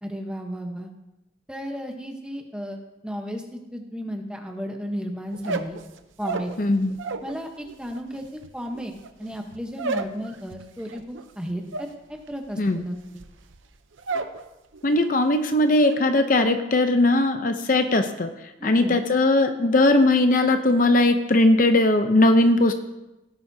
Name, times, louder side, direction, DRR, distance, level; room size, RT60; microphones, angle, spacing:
voice 1, 0.0-0.9 1.5-5.8 6.2-6.5 7.2-8.2 8.5-8.9 9.2-13.2 18.6-18.9, equal, 5° right, 3 dB, 1.0 m, -34 dB
sound 1, 5.3-7.4 7.6-14.4 14.7-15.2 15.5-16.0, right 4 dB, 85° right, 0.8 m, -33 dB
voice 2, 6.6-7.0 12.6-12.8 14.8-18.3 18.6-22.7, left 2 dB, 45° left, 7 dB, 0.7 m, -19 dB
17.5 x 10.5 x 2.8 m, 0.97 s
head